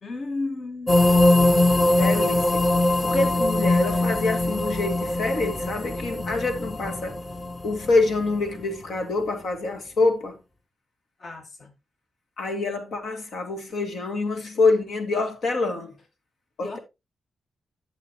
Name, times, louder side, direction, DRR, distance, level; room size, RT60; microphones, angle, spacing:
voice 1, 0.0-1.0 11.2-11.7 16.6-16.8, left 3 dB, 55° left, 2.2 m, -33 dB
sound 1, 0.9-8.6, left 1 dB, 25° left, 1.2 m, -22 dB
voice 2, 1.9-2.6 3.0-7.2 7.6-10.4 12.4-15.9 16.6-16.8, left 3 dB, 75° left, 2.4 m, -26 dB
12.5 x 6.7 x 2.9 m
cardioid pair, 80°, 0 cm